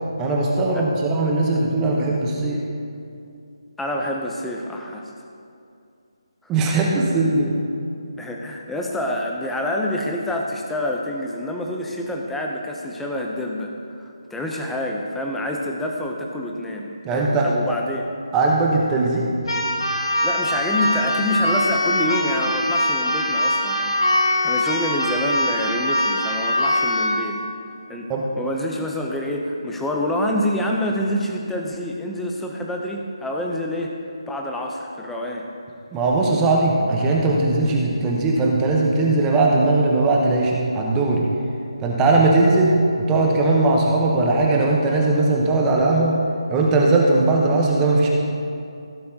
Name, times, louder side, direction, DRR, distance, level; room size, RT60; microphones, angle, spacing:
voice 1, 0.2-2.6 6.5-7.5 17.0-17.5 18.3-19.3 28.1-28.2 35.9-41.2 41.8-46.2 46.5-48.1, right 2 dB, 10° right, -2 dB, 1.0 m, -19 dB
voice 2, 3.8-5.1 8.2-13.7 14.0-18.1 20.2-27.4 27.9-28.1 28.4-33.9 34.3-35.5, left 1 dB, 5° left, 0 dB, 0.6 m, -27 dB
Keyboard (musical), 19.4-27.2, left 1 dB, 65° left, 1.9 m, -22 dB
15.5 x 7.5 x 2.8 m, 2.5 s
figure-of-eight pair, 160°, 3 cm